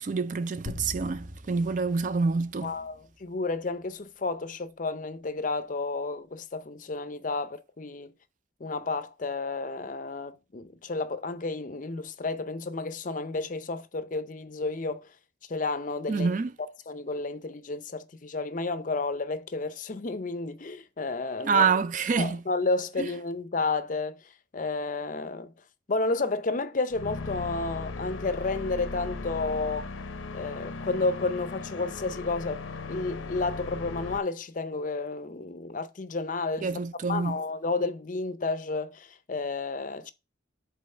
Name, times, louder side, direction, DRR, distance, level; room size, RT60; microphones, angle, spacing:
voice 1, 0.0-2.7 16.1-16.5 21.4-22.4 23.0-23.1 36.6-37.4, right 5 dB, 40° right, 0.3 m, -27 dB
sound 1, 0.7-3.3, left 1 dB, 65° right, 1.9 m, -42 dB
voice 2, 2.6-8.1 8.6-15.1 15.5-16.3 16.9-21.7 22.2-25.5 25.9-29.9 30.3-32.6 32.9-36.7 37.1-40.1, left 3 dB, 40° left, 0.5 m, -31 dB
sound 2, 26.9-34.2, left 3 dB, 85° left, 0.7 m, -38 dB
5.3 x 4.1 x 5.4 m
head